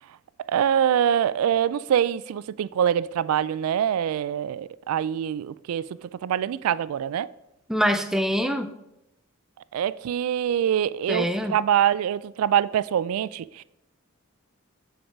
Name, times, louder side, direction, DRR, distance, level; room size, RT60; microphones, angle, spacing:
voice 1, 0.5-7.3 9.7-13.6, right 9 dB, 90° right, 0.3 m, -24 dB
voice 2, 7.7-8.7 11.1-11.6, equal, ahead, 0.5 m, -24 dB
8.8 x 4.6 x 4.6 m
head